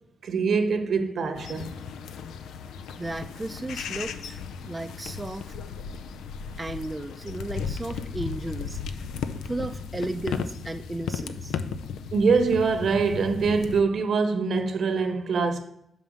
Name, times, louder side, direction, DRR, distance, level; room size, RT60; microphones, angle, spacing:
voice 1, 0.2-1.7 12.1-15.6, right 4 dB, 65° right, 1.0 m, -24 dB
sound 1, 1.4-13.8, left 6 dB, 85° left, 0.4 m, -35 dB
voice 2, 3.0-5.5 6.6-9.1 9.4-11.6, right 2 dB, 20° right, 0.5 m, -34 dB
5.7 x 5.1 x 6.4 m
cardioid pair, 60°, 0 cm